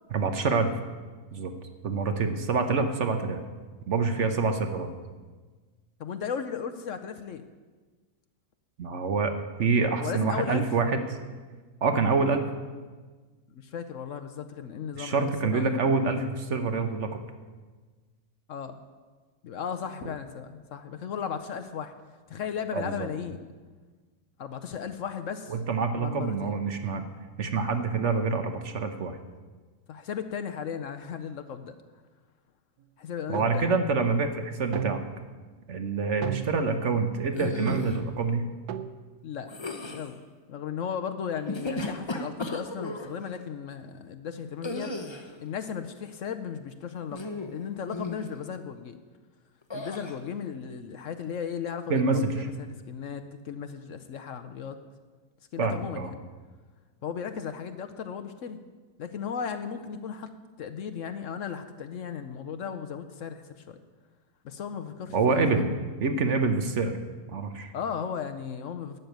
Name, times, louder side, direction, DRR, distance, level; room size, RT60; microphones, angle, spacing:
voice 1, 0.1-0.7 1.3-1.5 1.8-3.4 3.9-4.9 8.8-9.3 9.6-11.0 11.8-12.4 14.9-17.1 20.0-20.1 22.7-23.1 25.5-27.1 27.4-29.2 33.3-35.0 35.7-38.5 51.9-52.5 55.6-56.1 65.1-66.9 67.3-67.7, right 4 dB, 55° right, 7 dB, 1.2 m, -26 dB
voice 2, 6.0-7.5 10.0-10.7 13.5-15.8 18.5-18.8 19.4-21.9 22.3-23.5 24.4-25.5 26.0-26.5 29.9-31.8 33.0-33.7 39.2-39.5 39.8-40.2 40.5-44.9 45.4-49.0 49.7-54.8 55.5-56.2 57.0-58.6 59.0-60.3 60.6-63.8 64.4-65.7 67.7-69.0, left 7 dB, 65° left, 8 dB, 1.0 m, -36 dB
sound 1, 33.3-33.7 34.7-35.3 36.2-36.8 37.7-38.2 38.7-39.0, right 10 dB, 80° right, 1.2 m, -34 dB
sound 2, 37.3-38.0 39.5-40.1 41.3-43.1 44.6-45.3 47.1-47.6 47.9-48.3 49.7-50.1, left 2 dB, 25° left, 0.7 m, -35 dB
12.0 x 6.8 x 9.2 m, 1.4 s
omnidirectional pair, 1.6 m